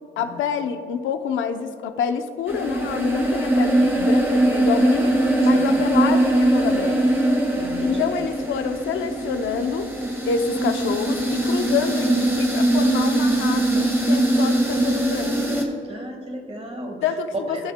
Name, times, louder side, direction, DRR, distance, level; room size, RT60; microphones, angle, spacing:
voice 1, 0.2-5.1 5.4-7.1 7.8-9.9 10.3-15.4 17.0-17.7, left 7 dB, 80° left, 8 dB, 0.7 m, -27 dB
sound 1, 2.5-15.6, right 1 dB, 10° right, 1.7 m, -21 dB
voice 2, 7.5-8.1 15.8-17.0 17.5-17.6, equal, 30° right, 3 dB, 1.7 m, -35 dB
16.0 x 6.3 x 2.2 m, 2.7 s
cardioid pair, 90°, 20 cm